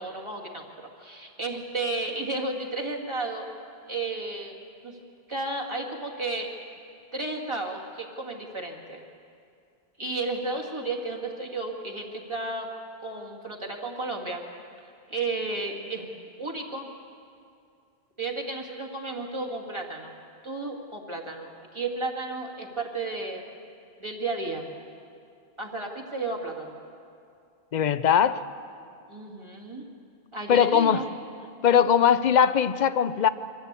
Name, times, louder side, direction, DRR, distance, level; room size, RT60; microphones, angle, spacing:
voice 1, 0.0-3.5 3.9-4.6 4.8-5.0 5.3-6.5 7.1-9.0 10.0-12.7 13.0-14.4 15.1-16.9 18.2-20.1 20.4-23.4 24.0-24.7 25.6-26.7 29.1-29.9 30.3-31.1, right 3 dB, 25° right, 0 dB, 2.3 m, -33 dB
voice 2, 27.7-28.4 30.5-31.0 31.6-33.3, left 8 dB, 50° left, 14 dB, 0.7 m, -20 dB
24.5 x 14.5 x 8.3 m, 2.4 s
omnidirectional pair, 1.1 m